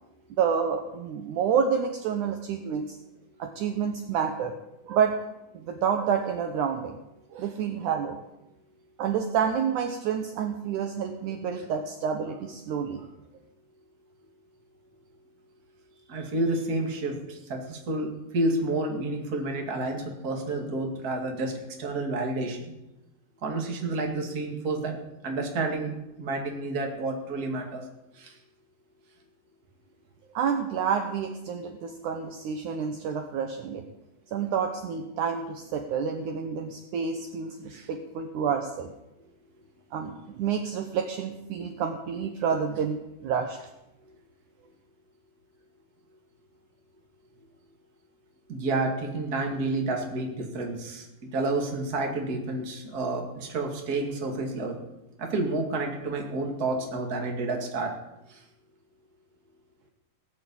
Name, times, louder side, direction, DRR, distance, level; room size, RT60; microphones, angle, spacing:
voice 1, 0.4-3.0 3.4-4.6 4.9-5.2 5.7-7.0 7.3-8.2 9.0-13.1 30.3-33.8 34.3-38.9 39.9-43.6, right 7 dB, 70° right, 6 dB, 2.2 m, -29 dB
voice 2, 16.1-22.7 23.4-25.0 25.2-25.9 26.2-27.8 28.2-28.3 37.7-37.9 48.5-51.1 51.3-54.8 55.2-57.9 58.3-58.4, right 2 dB, 30° right, 2 dB, 2.1 m, -30 dB
18.0 x 6.7 x 8.5 m, 0.93 s
omnidirectional pair, 4.1 m